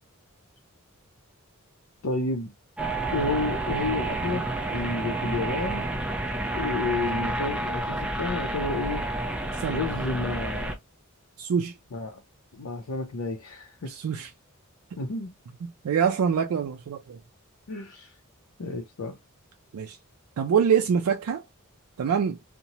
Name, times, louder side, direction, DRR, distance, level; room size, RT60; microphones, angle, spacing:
voice 1, 2.0-2.5 3.1-5.9 6.5-9.1 9.7-10.8 11.9-12.2 12.6-13.9 15.0-15.3 17.7-18.1 18.6-19.2, left 3 dB, 85° left, 0.6 m, -31 dB
sound 1, 2.8-10.7, right 2 dB, 5° right, 0.4 m, -30 dB
voice 2, 11.4-11.8 13.9-14.3 15.8-17.2 19.7-20.0 20.4-21.5 22.0-22.4, right 7 dB, 85° right, 0.4 m, -25 dB
2.9 x 2.1 x 2.7 m
head